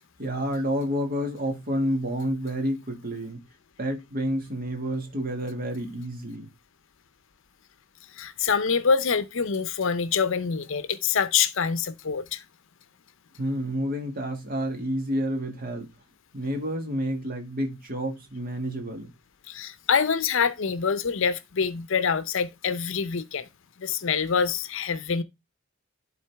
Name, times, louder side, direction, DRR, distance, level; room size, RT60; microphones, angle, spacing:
voice 1, 0.2-3.4 3.8-6.5 13.4-15.9 16.3-19.1, equal, 40° right, 1.7 m, -29 dB
voice 2, 8.2-12.4 19.5-23.5 23.8-25.2, left 6 dB, 60° left, 0.6 m, -25 dB
11.5 x 4.0 x 3.4 m
head